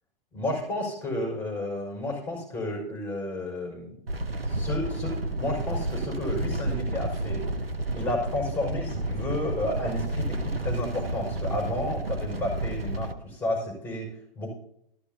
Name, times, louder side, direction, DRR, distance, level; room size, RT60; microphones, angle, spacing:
voice 1, 0.3-4.0 4.5-7.4 7.9-14.5, left 1 dB, 5° left, 0 dB, 5.5 m, -32 dB
sound 1, 4.1-13.1, right 2 dB, 85° right, 1.0 m, -31 dB
14.0 x 13.0 x 2.8 m, 0.72 s
figure-of-eight pair, 115°, 29 cm